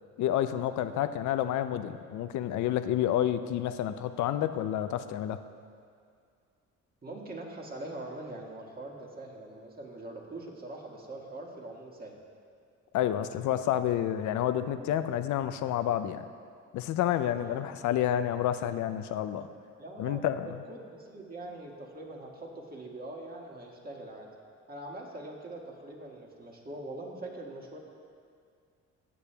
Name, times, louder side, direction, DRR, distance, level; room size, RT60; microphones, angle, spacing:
voice 1, 0.2-5.4 12.9-16.2 16.7-19.5 20.0-20.5, left 11 dB, 70° left, 10 dB, 0.5 m, -29 dB
voice 2, 7.0-12.1 17.3-17.7 19.8-24.3 24.7-27.8, right 2 dB, 30° right, -1 dB, 1.6 m, -43 dB
15.5 x 8.4 x 2.3 m, 2.2 s
cardioid pair, 90°, 30 cm